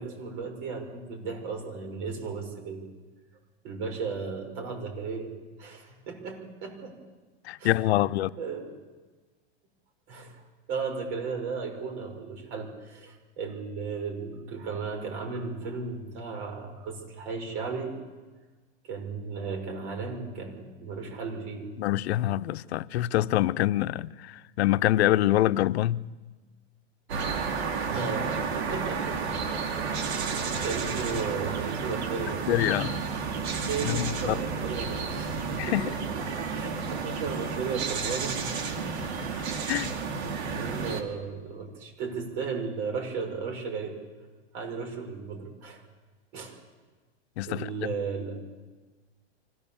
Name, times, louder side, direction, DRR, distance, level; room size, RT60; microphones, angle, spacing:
voice 1, 0.0-2.9 3.6-5.3 5.6-7.0 7.6-8.1 8.4-8.7 10.1-10.4 10.7-18.0 18.8-21.7 27.9-29.2 30.1-30.4 30.6-32.4 33.5-39.1 39.6-40.1 40.6-44.0 44.5-45.8 46.3-46.6 47.5-48.4, right 5 dB, 50° right, 5.7 m, -35 dB
voice 2, 7.4-8.3 21.8-26.0 32.5-32.9 33.8-34.3 35.6-35.9 39.7-39.9 47.4-47.7, left 14 dB, 75° left, 0.7 m, -25 dB
sound 1, 27.1-41.0, right 5 dB, 80° right, 2.8 m, -31 dB
25.5 x 16.0 x 7.1 m
supercardioid pair, 135°, 33 cm